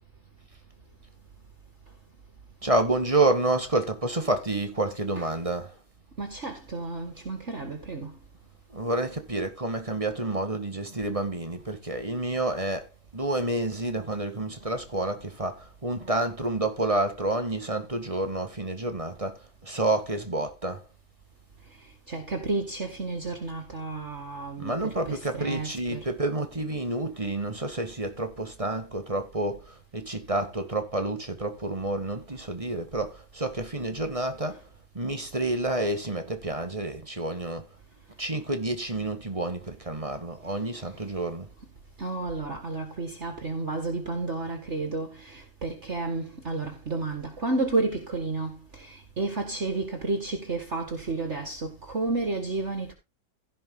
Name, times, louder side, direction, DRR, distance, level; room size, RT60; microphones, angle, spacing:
voice 1, 2.6-5.8 8.7-20.9 24.6-34.6 34.9-37.7 38.2-41.5, right 2 dB, 20° right, 1.8 m, -29 dB
voice 2, 6.2-8.1 22.1-26.1 42.0-52.9, right 3 dB, 45° right, 2.2 m, -31 dB
16.5 x 5.5 x 3.9 m
omnidirectional pair, 1.8 m